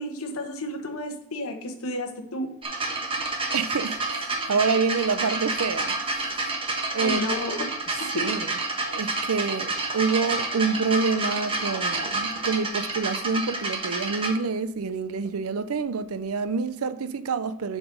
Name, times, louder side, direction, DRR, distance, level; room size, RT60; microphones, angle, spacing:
voice 1, 0.0-2.5 7.0-7.7 8.1-8.3, left 1 dB, 80° left, 1.3 m, -31 dB
sound 1, 2.6-14.3 15.3-15.4, right 3 dB, 25° right, 1.2 m, -29 dB
voice 2, 3.5-6.5 6.9-7.4 8.1-8.6 8.9-17.8, right 4 dB, 80° right, 0.6 m, -27 dB
7.1 x 5.0 x 5.3 m
head